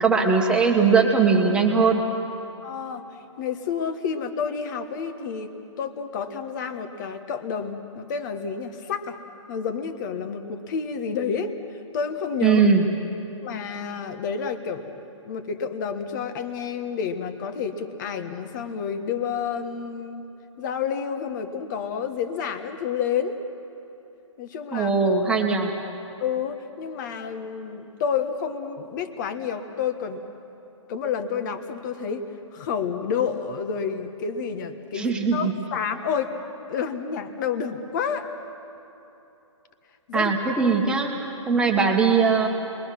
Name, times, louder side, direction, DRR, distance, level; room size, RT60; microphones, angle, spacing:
voice 1, 0.0-2.0 12.4-12.8 24.7-25.7 34.9-35.5 40.1-41.1 41.5-42.5, right 5 dB, 5° right, 1 dB, 1.7 m, -20 dB
voice 2, 2.6-3.1 3.4-9.2 9.5-11.5 11.9-12.7 13.4-15.0 15.3-20.2 20.6-23.4 24.4-24.9 26.2-30.2 30.9-32.2 32.5-36.3 36.7-38.3 40.1-40.3 41.5-41.6, left 6 dB, 35° left, 8 dB, 1.5 m, -29 dB
29.5 x 22.0 x 6.0 m, 3.0 s
hypercardioid pair, 155°, 17 cm